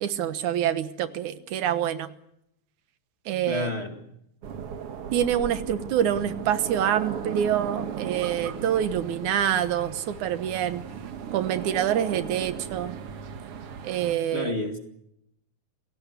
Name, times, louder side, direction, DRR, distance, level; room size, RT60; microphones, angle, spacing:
voice 1, 0.0-2.1 3.3-3.7 5.1-10.8 11.3-13.0 13.8-14.5, right 10 dB, 90° right, 11 dB, 2.7 m, -26 dB
voice 2, 3.5-4.1 14.3-14.8, left 2 dB, 25° left, 4 dB, 2.1 m, -30 dB
sound 1, 4.4-14.2, right 7 dB, 60° right, 2.1 m, -36 dB
28.0 x 17.0 x 8.2 m, 0.79 s
omnidirectional pair, 3.3 m